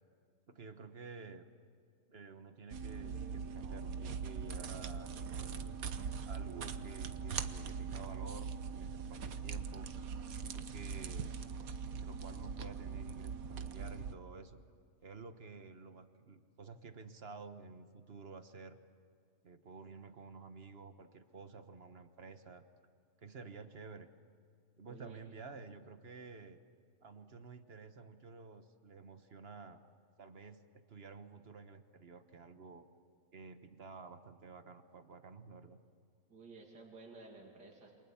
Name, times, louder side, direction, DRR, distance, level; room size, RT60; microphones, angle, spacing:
voice 1, 0.5-1.4 2.1-5.8 6.3-9.9 10.4-11.3 12.0-14.6 15.0-18.8 19.4-22.6 23.2-24.1 24.8-26.6 27.0-29.8 30.2-32.8 33.3-35.8, right 4 dB, 40° right, 9 dB, 1.3 m, -51 dB
sound 1, 2.7-14.1, right 6 dB, 60° right, 1.4 m, -41 dB
voice 2, 24.8-25.2 36.3-37.9, right 3 dB, 75° right, -1 dB, 3.2 m, -54 dB
28.5 x 27.0 x 7.2 m, 2.4 s
omnidirectional pair, 1.8 m